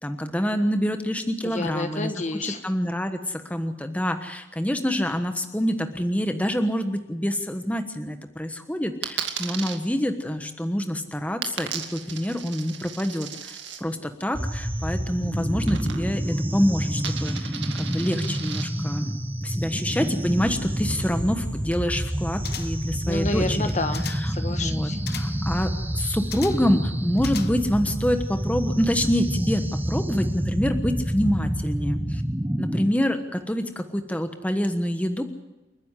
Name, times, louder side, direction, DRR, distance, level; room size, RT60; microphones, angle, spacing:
voice 1, 0.0-2.1 2.6-19.1 19.4-23.7 24.5-32.2 32.6-35.2, equal, 10° left, 7 dB, 1.2 m, -26 dB
voice 2, 1.4-2.6 23.1-25.0, left 2 dB, 40° left, 8 dB, 1.3 m, -30 dB
Coin (dropping), 9.0-9.8 11.4-13.8 15.7-16.3 16.6-18.6, right 8 dB, 70° right, 2.2 m, -35 dB
sound 1, 14.3-32.9, equal, 10° right, 0.9 m, -28 dB
sound 2, 22.4-23.0 23.6-24.4 25.1-25.5 26.3-26.8 27.2-27.8 28.2-28.3, left 9 dB, 55° left, 1.0 m, -39 dB
29.0 x 9.9 x 9.9 m, 1.0 s
head